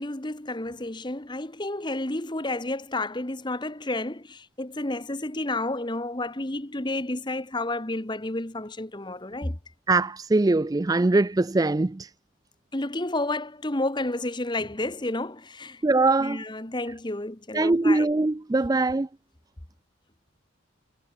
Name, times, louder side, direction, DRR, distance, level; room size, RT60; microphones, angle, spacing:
voice 1, 0.0-9.6 12.7-15.8 16.2-18.1, left 2 dB, 20° left, 1.2 m, -31 dB
voice 2, 9.9-12.1 15.8-16.4 17.5-19.1, right 2 dB, 15° right, 0.3 m, -22 dB
head